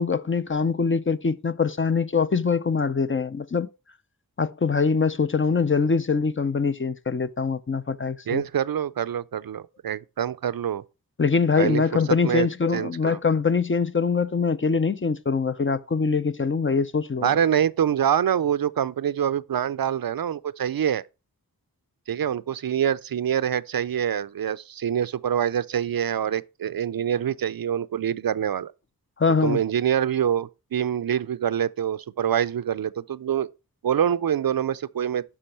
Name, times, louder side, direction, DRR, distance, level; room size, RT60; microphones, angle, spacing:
voice 1, 0.0-3.7 4.4-8.4 11.2-17.3 29.2-29.6, left 5 dB, 35° left, 0.5 m, -23 dB
voice 2, 8.3-10.8 11.6-11.8 12.2-12.5 12.7-13.2 17.2-21.0 22.1-28.7 29.4-33.5 33.8-35.2, right 9 dB, 70° right, 0.5 m, -25 dB
10.0 x 5.9 x 4.4 m
wide cardioid pair, 85°, 37 cm